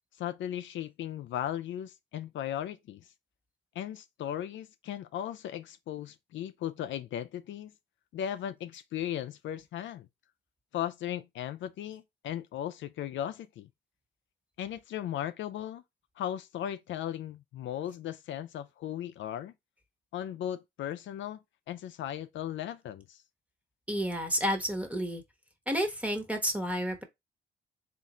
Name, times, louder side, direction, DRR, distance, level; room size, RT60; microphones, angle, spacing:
voice 1, 0.2-3.1 3.8-7.7 8.1-10.1 10.7-13.7 14.6-15.8 16.2-19.5 20.1-21.4 21.7-23.2, left 11 dB, 70° left, 0.5 m, -37 dB
voice 2, 23.9-25.2 25.7-27.0, equal, 5° right, 1.1 m, -30 dB
3.7 x 2.6 x 4.1 m
cardioid pair, 90°, 20 cm